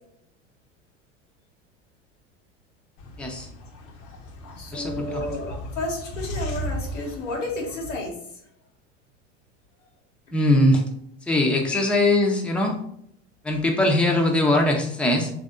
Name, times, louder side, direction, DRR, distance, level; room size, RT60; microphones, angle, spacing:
sound 1, 3.0-8.1, equal, 55° left, 0.9 m, -36 dB
voice 1, 3.2-3.5 4.7-5.2 10.3-10.8 11.3-12.8 13.4-15.3, left 1 dB, 5° left, 1 dB, 0.6 m, -21 dB
voice 2, 4.6-8.1 11.7-11.9, left 2 dB, 85° left, -1 dB, 1.2 m, -31 dB
3.3 x 2.6 x 3.6 m, 0.70 s
hypercardioid pair, 80°, 37 cm